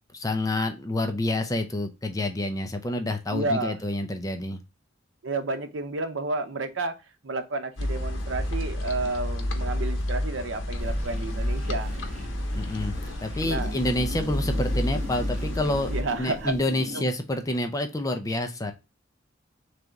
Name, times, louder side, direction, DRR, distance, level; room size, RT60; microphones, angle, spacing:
voice 1, 0.1-4.6 12.5-12.9 13.2-15.9 16.2-18.7, left 1 dB, 20° left, 7 dB, 0.5 m, -28 dB
voice 2, 3.3-3.8 5.2-6.9 7.2-11.9 13.4-13.7 15.9-16.5 16.9-17.0, right 3 dB, 85° right, 8 dB, 0.7 m, -31 dB
sound 1, 7.8-16.0, left 1 dB, 85° left, 0.8 m, -30 dB
sound 2, 10.8-17.0, equal, 35° right, 1.2 m, -38 dB
3.6 x 3.3 x 3.9 m, 0.26 s
head